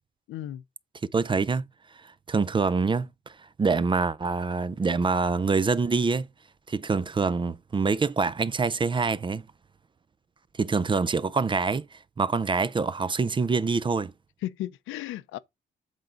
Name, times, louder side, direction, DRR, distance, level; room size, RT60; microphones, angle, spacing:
voice 1, 0.3-0.6 14.4-15.4, left 13 dB, 85° left, 0.7 m, -34 dB
voice 2, 1.1-1.6 2.0-3.1 3.6-6.3 6.7-9.5 10.6-14.1, right 4 dB, 25° right, 0.5 m, -25 dB
8.1 x 3.9 x 5.2 m
cardioid pair, 90°, 20 cm